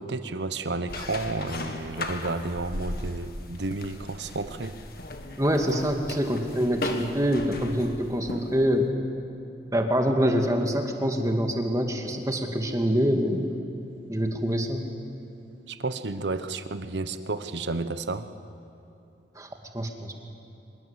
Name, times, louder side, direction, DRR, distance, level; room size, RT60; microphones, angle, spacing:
voice 1, 0.0-4.8 15.7-18.3, right 3 dB, 75° right, 11 dB, 1.1 m, -31 dB
sound 1, 0.9-8.7, left 2 dB, 55° left, 1.9 m, -37 dB
voice 2, 5.4-8.9 9.7-13.5 14.1-14.8 19.4-19.5 19.7-20.1, equal, 20° right, 4 dB, 2.1 m, -25 dB
24.5 x 22.0 x 8.3 m, 2.9 s
head